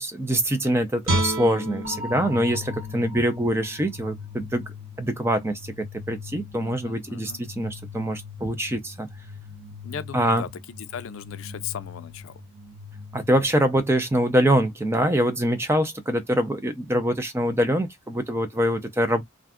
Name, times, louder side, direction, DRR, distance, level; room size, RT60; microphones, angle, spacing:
voice 1, 0.0-4.6 5.0-9.1 10.1-10.5 13.1-19.2, right 1 dB, 10° right, 0.4 m, -24 dB
Guitar, 1.0-4.2 4.6-4.8, right 1 dB, 70° right, 1.5 m, -30 dB
sound 1, 1.8-13.8, left 4 dB, 40° right, 0.8 m, -40 dB
voice 2, 6.6-7.4 9.8-10.5 10.9-12.4, left 8 dB, 70° left, 0.4 m, -37 dB
2.5 x 2.3 x 3.5 m
head